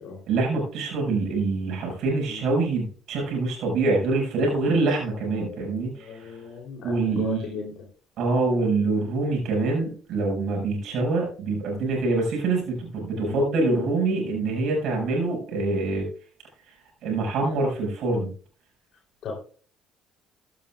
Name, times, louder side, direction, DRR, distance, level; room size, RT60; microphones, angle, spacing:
voice 1, 0.3-6.4 6.8-7.5 8.2-16.1 17.0-18.3, right 3 dB, 60° right, -1 dB, 6.2 m, -25 dB
voice 2, 5.1-7.9 13.1-13.4 19.2-19.4, left 5 dB, 60° left, -3 dB, 3.6 m, -37 dB
14.5 x 11.5 x 2.5 m, 0.42 s
hypercardioid pair, 55°, 0 cm